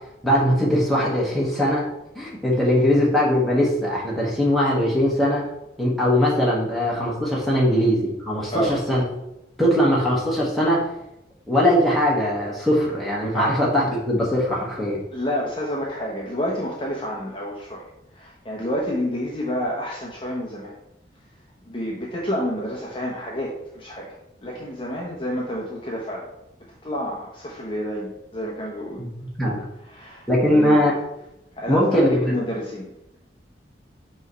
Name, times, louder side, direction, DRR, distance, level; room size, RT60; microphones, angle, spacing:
voice 1, 0.2-1.9 2.1-5.4 5.8-9.0 9.6-10.8 11.5-15.0 29.0-29.1 29.4-29.6 30.3-30.9 31.7-32.3, equal, ahead, -5 dB, 1.5 m, -20 dB
voice 2, 8.5-8.8 13.3-13.5 15.1-20.8 21.6-26.3 26.8-29.0 29.8-30.8 31.5-32.9, equal, 25° left, -3 dB, 0.9 m, -29 dB
6.1 x 3.2 x 5.6 m, 0.86 s
head